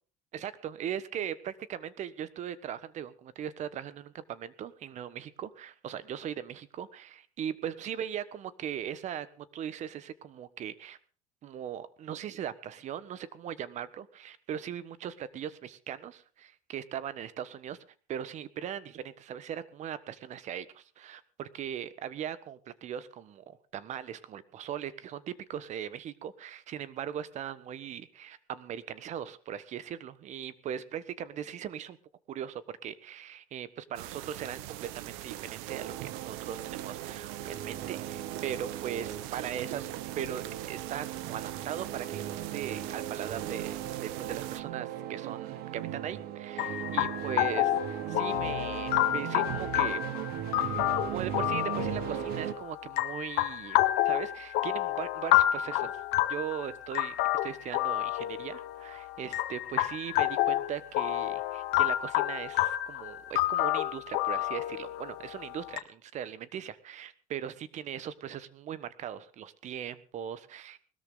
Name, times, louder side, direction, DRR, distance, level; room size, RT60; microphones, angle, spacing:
voice 1, 0.3-11.0 11.4-17.8 18.1-32.0 32.3-39.9 40.1-50.0 50.6-53.8 54.0-56.0 56.3-57.1 57.4-70.9, right 9 dB, 40° right, 15 dB, 1.3 m, -39 dB
sound 1, 33.9-44.6, right 14 dB, 80° right, 1.1 m, -42 dB
sound 2, 35.7-52.5, right 11 dB, 60° right, 1.6 m, -38 dB
sound 3, 46.6-65.8, left 15 dB, 65° left, 1.5 m, -29 dB
20.5 x 13.0 x 3.9 m, 0.40 s
supercardioid pair, 125°, 18 cm